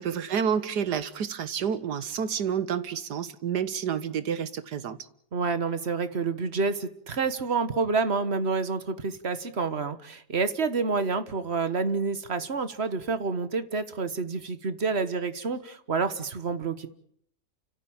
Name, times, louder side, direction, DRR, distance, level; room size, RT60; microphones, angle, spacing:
voice 1, 0.0-5.0, right 7 dB, 75° right, 1.8 m, -29 dB
voice 2, 5.3-16.9, right 4 dB, 40° right, 1.5 m, -28 dB
30.0 x 14.5 x 8.8 m
omnidirectional pair, 1.8 m